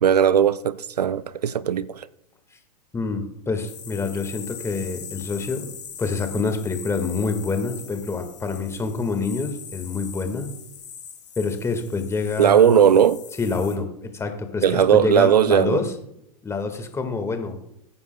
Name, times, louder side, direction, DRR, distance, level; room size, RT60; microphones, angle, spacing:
voice 1, 0.0-2.1 12.4-13.2 14.6-15.8, right 8 dB, 85° right, 0.5 m, -18 dB
voice 2, 2.9-5.7 6.0-10.5 11.4-12.8 13.4-15.9 16.4-17.6, left 4 dB, 15° left, 1.7 m, -27 dB
sound 1, 3.6-13.7, left 8 dB, 85° left, 2.5 m, -41 dB
20.5 x 9.6 x 2.3 m
hypercardioid pair, 105°, 20 cm